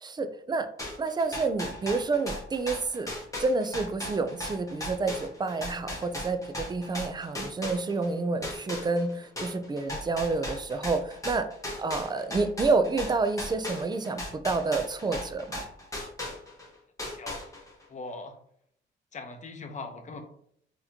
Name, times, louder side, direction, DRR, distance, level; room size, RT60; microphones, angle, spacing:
voice 1, 0.0-0.7 1.0-3.1 3.4-11.4 11.8-15.6, right 3 dB, 20° right, 9 dB, 0.4 m, -29 dB
sound 1, 0.8-8.1 8.4-16.7 17.0-17.8, left 1 dB, 15° left, 1.2 m, -37 dB
voice 2, 17.1-18.3 19.1-20.2, left 3 dB, 40° left, 5 dB, 0.8 m, -41 dB
3.9 x 2.9 x 2.8 m, 0.67 s
cardioid pair, 90°, 20 cm